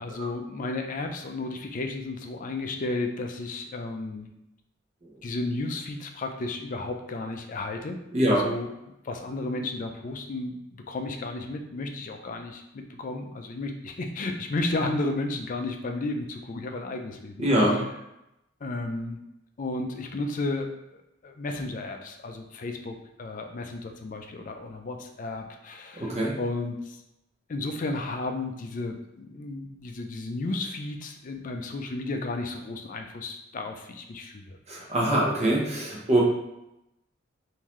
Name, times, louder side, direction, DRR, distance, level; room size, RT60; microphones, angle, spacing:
voice 1, 0.0-4.3 5.2-8.0 8.3-8.7 9.0-17.9 18.6-19.2 19.6-20.8 21.2-27.0 27.5-34.6, left 2 dB, 45° left, 4 dB, 0.4 m, -33 dB
voice 2, 17.4-17.8 26.0-26.3 34.7-36.2, right 1 dB, 35° right, -3 dB, 0.9 m, -23 dB
3.7 x 2.7 x 3.1 m, 0.86 s
head